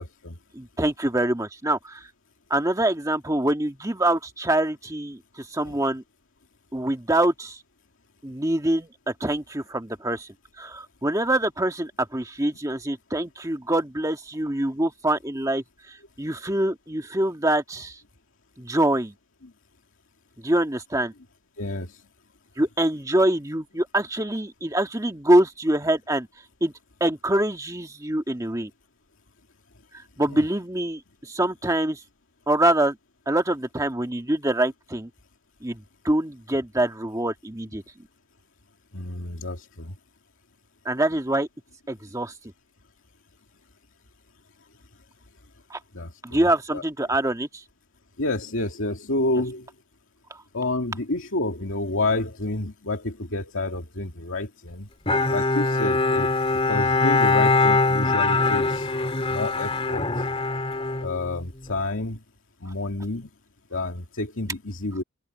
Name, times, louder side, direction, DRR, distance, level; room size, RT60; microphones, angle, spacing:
voice 1, 0.0-0.4 5.7-5.8 21.6-22.0 30.3-30.4 38.9-39.9 45.9-46.8 48.2-49.7 50.5-54.9 55.3-56.3 56.7-58.9 59.3-60.2 61.0-62.2 62.6-63.3 63.7-65.0, left 2 dB, 70° left, 2.4 m, -29 dB
voice 2, 0.5-2.0 2.5-6.0 6.7-7.6 8.2-10.3 10.6-15.6 16.2-18.0 18.6-19.1 20.4-21.1 22.6-26.3 26.6-26.7 27.0-28.7 30.2-32.0 32.5-33.0 33.3-35.1 35.6-37.8 40.9-41.5 41.9-42.3 45.7-45.8 46.2-47.5, right 1 dB, 15° right, 1.7 m, -24 dB
Bowed string instrument, 55.1-61.7, left 3 dB, 30° left, 2.1 m, -22 dB
open air
head